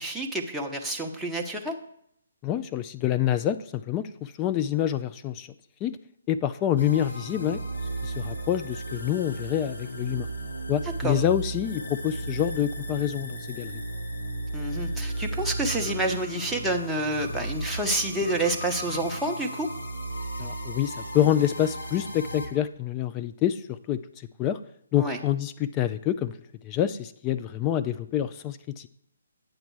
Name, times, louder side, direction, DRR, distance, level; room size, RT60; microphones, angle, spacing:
voice 1, 0.0-1.8 11.0-11.2 14.5-19.7 25.0-25.2, right 1 dB, 5° right, -1 dB, 0.9 m, -28 dB
voice 2, 2.4-5.5 5.8-6.0 6.3-7.6 8.0-10.3 10.7-13.8 20.4-24.6 24.9-26.3 26.6-28.9, left 11 dB, 25° left, 10 dB, 0.3 m, -27 dB
sound 1, 6.8-22.5, right 1 dB, 85° left, 1.6 m, -35 dB
9.1 x 7.1 x 4.6 m, 0.71 s
figure-of-eight pair, 140°, 0 cm